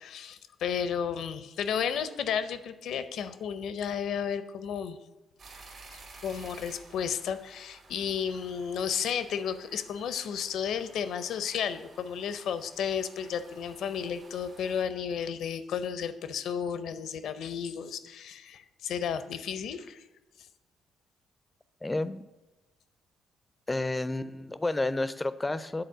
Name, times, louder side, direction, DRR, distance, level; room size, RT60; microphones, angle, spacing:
voice 1, 0.0-5.0 6.2-20.0, left 7 dB, 75° left, 12 dB, 0.6 m, -33 dB
sound 1, 5.4-14.8, right 3 dB, 60° right, 2.0 m, -53 dB
voice 2, 21.8-22.2 23.7-25.8, left 2 dB, 15° left, 15 dB, 0.4 m, -30 dB
7.8 x 4.2 x 6.7 m, 1.1 s
cardioid pair, 90°, 0 cm